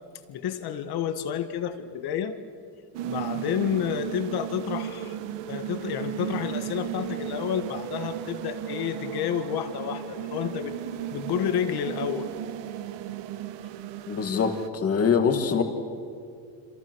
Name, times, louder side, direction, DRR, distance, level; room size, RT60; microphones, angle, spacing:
voice 1, 0.3-2.4 3.0-5.2 5.5-10.7 11.1-12.3, left 9 dB, 60° left, 9 dB, 1.9 m, -30 dB
sound 1, 2.9-14.7, right 11 dB, 85° right, 1.4 m, -35 dB
voice 2, 14.1-15.6, left 6 dB, 35° left, 6 dB, 2.3 m, -24 dB
27.5 x 27.0 x 6.4 m, 2.3 s
cardioid pair, 155°, 42 cm